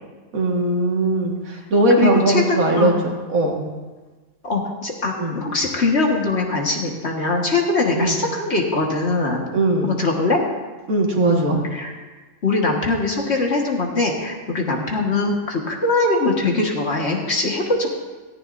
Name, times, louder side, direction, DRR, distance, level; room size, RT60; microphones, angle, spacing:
voice 1, 0.3-3.6 5.2-5.4 8.0-8.2 9.5-9.9 10.9-11.6, right 2 dB, 75° right, 0 dB, 2.2 m, -19 dB
voice 2, 2.0-3.0 4.4-9.4 9.8-10.4 11.7-11.9 12.4-17.9, left 3 dB, 50° left, 0 dB, 1.9 m, -22 dB
17.0 x 14.5 x 2.6 m, 1.3 s
omnidirectional pair, 1.5 m